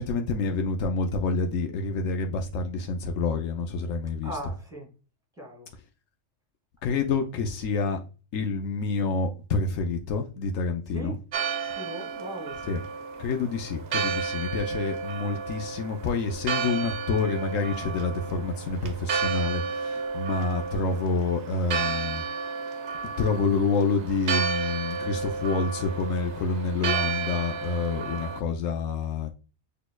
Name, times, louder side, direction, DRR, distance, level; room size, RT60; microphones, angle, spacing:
voice 1, 0.0-4.3 6.8-8.0 8.3-11.2 12.6-12.8 13.2-22.2 23.2-29.3, left 4 dB, 90° left, 1.1 m, -28 dB
voice 2, 4.2-4.9 5.4-5.7 10.9-11.2 11.8-12.6, right 1 dB, 5° right, 2.3 m, -38 dB
Church bell, 11.3-28.4, right 5 dB, 65° right, 0.9 m, -32 dB
6.2 x 3.3 x 2.2 m
omnidirectional pair, 1.3 m